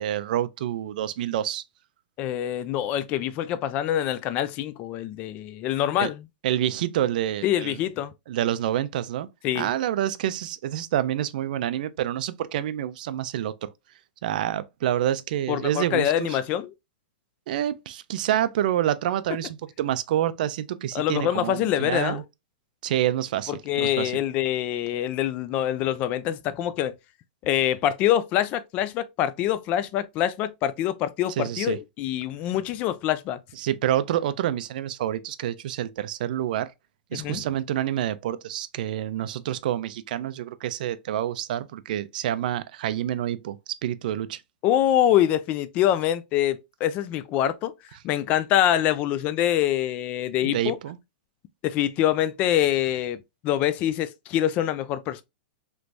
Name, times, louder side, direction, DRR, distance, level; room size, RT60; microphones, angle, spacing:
voice 1, 0.0-1.6 6.0-6.1 6.4-7.8 8.3-9.3 9.5-13.7 14.2-16.4 17.5-22.2 22.8-24.1 31.4-31.8 33.6-36.7 37.1-44.4 50.4-51.0, right 11 dB, 55° right, 0.4 m, -27 dB
voice 2, 2.2-6.2 7.4-8.1 9.4-9.7 15.5-16.7 20.9-22.2 23.5-26.9 27.4-33.4 37.1-37.4 44.6-47.7 48.0-50.8 51.6-55.2, left 11 dB, 30° left, 0.3 m, -25 dB
3.3 x 3.0 x 2.5 m
hypercardioid pair, 155°, 5 cm